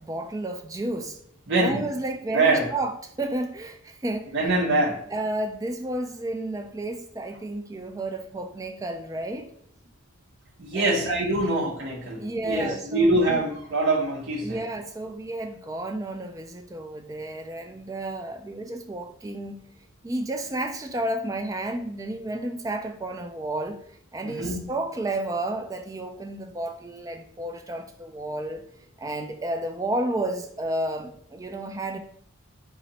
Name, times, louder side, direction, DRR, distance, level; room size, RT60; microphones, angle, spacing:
voice 1, 0.0-1.2 1.6-4.4 5.1-9.5 10.7-11.1 11.3-11.6 12.2-13.4 14.4-19.6 20.0-23.8 24.1-28.7 29.0-32.0, right 1 dB, 15° right, 6 dB, 0.3 m, -31 dB
voice 2, 1.5-1.8 2.3-2.7 4.3-5.0 10.6-14.6 24.2-24.6, right 2 dB, 55° right, -3 dB, 1.0 m, -24 dB
4.1 x 2.8 x 4.1 m, 0.62 s
head